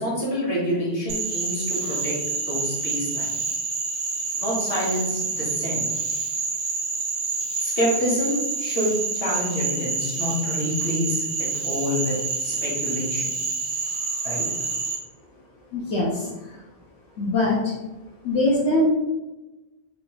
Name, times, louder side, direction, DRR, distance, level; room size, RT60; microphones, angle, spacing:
voice 1, 0.0-2.2 2.5-3.3 4.4-5.8 7.6-12.1 12.4-13.3 14.2-14.4, equal, 65° left, -4 dB, 1.5 m, -27 dB
Frog, 1.1-15.0, right 4 dB, 80° right, 1.1 m, -28 dB
voice 2, 15.7-16.6 17.2-17.7 18.2-18.9, left 1 dB, 85° left, -6 dB, 1.0 m, -23 dB
3.6 x 2.2 x 3.8 m, 1.1 s
omnidirectional pair, 1.1 m